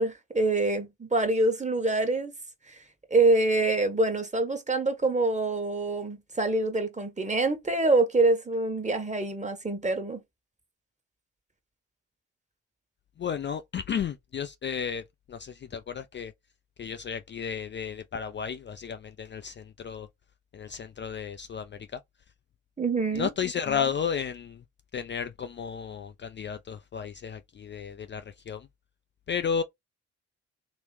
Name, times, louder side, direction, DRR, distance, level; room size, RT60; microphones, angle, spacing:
voice 1, 0.0-2.4 2.7-2.8 3.1-10.2 22.8-23.3, right 2 dB, 20° right, 1.4 m, -25 dB
voice 2, 13.2-15.0 15.3-16.3 16.8-20.1 20.5-22.0 23.1-24.6 24.9-28.7 29.3-29.6, left 7 dB, 35° left, 0.5 m, -33 dB
3.0 x 3.0 x 3.2 m
hypercardioid pair, 40°, 32 cm